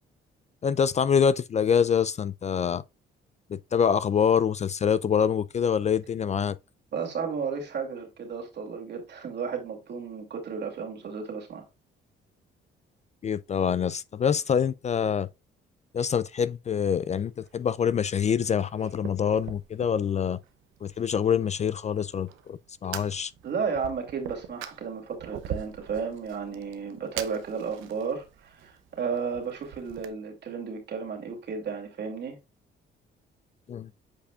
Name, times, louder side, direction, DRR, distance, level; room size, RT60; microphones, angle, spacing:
voice 1, 0.6-2.8 3.5-6.6 13.2-15.3 15.9-20.4 20.8-23.3 33.7-33.9, left 7 dB, 35° left, 0.4 m, -25 dB
voice 2, 6.9-11.6 23.4-32.4, right 6 dB, 60° right, 2.6 m, -33 dB
Fire, 17.1-30.1, right 9 dB, 90° right, 0.7 m, -44 dB
8.5 x 4.9 x 2.4 m
cardioid pair, 90°, 20 cm